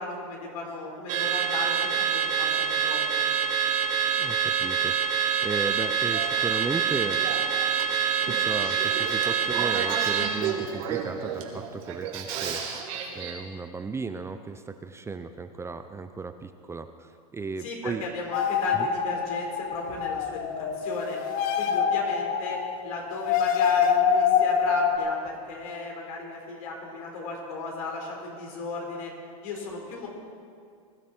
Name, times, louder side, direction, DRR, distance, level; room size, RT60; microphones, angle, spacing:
voice 1, 0.0-3.0 17.6-21.2 21.6-22.6 22.8-29.1 29.4-30.1, left 2 dB, 70° left, 0 dB, 4.6 m, -35 dB
Car / Alarm, 1.1-10.3, right 8 dB, 40° right, 2.7 m, -26 dB
voice 2, 4.2-7.2 8.3-12.6 13.1-18.1 18.7-18.9, right 4 dB, 15° right, 9 dB, 0.6 m, -35 dB
Male speech man speaking / Female speech woman speaking / Conversation, 5.7-13.3, right 7 dB, 60° right, 2.6 m, -34 dB
sound 1, 18.3-25.0, left 7 dB, 50° left, 1.3 m, -25 dB
21.5 x 12.5 x 4.5 m, 2.2 s
hypercardioid pair, 110°, 19 cm